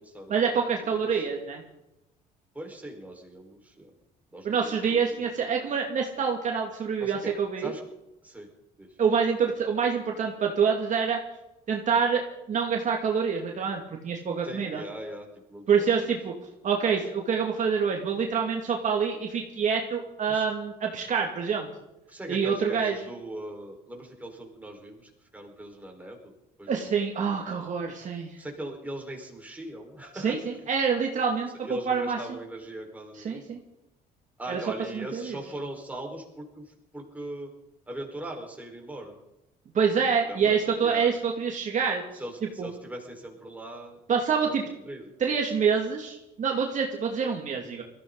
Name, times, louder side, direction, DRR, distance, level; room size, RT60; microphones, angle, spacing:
voice 1, 0.3-1.6 4.4-7.7 9.0-11.2 11.7-14.8 15.7-16.3 16.6-21.7 22.3-23.0 26.7-28.4 30.1-32.4 33.1-33.6 34.5-34.7 34.9-35.4 39.7-42.0 42.6-42.7 44.1-44.6 45.2-47.8, right 6 dB, 45° right, 1 dB, 2.3 m, -26 dB
voice 2, 2.5-3.9 4.3-5.1 5.4-5.5 7.0-7.3 7.6-7.8 8.2-8.5 8.8-8.9 14.4-16.1 20.3-20.4 22.1-26.3 26.6-26.9 28.4-30.4 31.6-33.6 34.4-36.6 36.9-37.5 37.9-39.2 40.3-41.2 42.2-44.0 44.4-44.6 44.9-45.4, right 1 dB, 10° right, 1 dB, 4.7 m, -40 dB
21.5 x 15.0 x 4.0 m, 0.91 s
cardioid pair, 110°, 17 cm